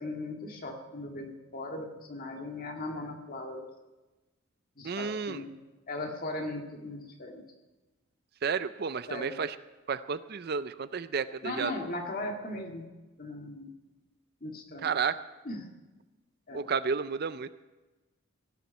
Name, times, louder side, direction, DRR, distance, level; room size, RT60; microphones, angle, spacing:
voice 1, 0.0-3.7 4.8-5.6 5.9-7.4 9.1-9.4 11.4-12.9 13.2-13.7 14.4-14.9 15.5-15.6 16.5-16.7, left 2 dB, 40° left, 2 dB, 1.9 m, -38 dB
voice 2, 4.8-5.4 8.4-9.6 9.9-11.9 14.8-15.2 16.5-17.5, right 5 dB, 45° right, 13 dB, 0.4 m, -32 dB
17.0 x 7.2 x 9.3 m, 1.2 s
head